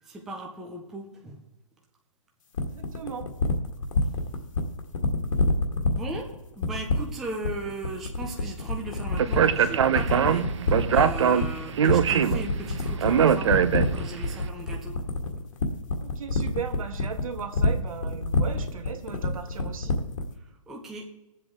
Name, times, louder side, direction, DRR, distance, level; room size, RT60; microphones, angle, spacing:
voice 1, 0.0-1.4 4.2-4.3 5.3-5.4 5.9-13.5 13.9-15.0 20.4-21.1, right 2 dB, ahead, -1 dB, 0.4 m, -38 dB
sound 1, 2.5-20.3, left 3 dB, 65° left, 1.8 m, -26 dB
voice 2, 2.7-3.3 16.0-20.0, right 6 dB, 70° right, 6 dB, 1.8 m, -37 dB
Speech, 9.2-14.2, right 8 dB, 55° right, 0.7 m, -22 dB
21.5 x 7.6 x 3.6 m, 0.99 s
hypercardioid pair, 170°, 18 cm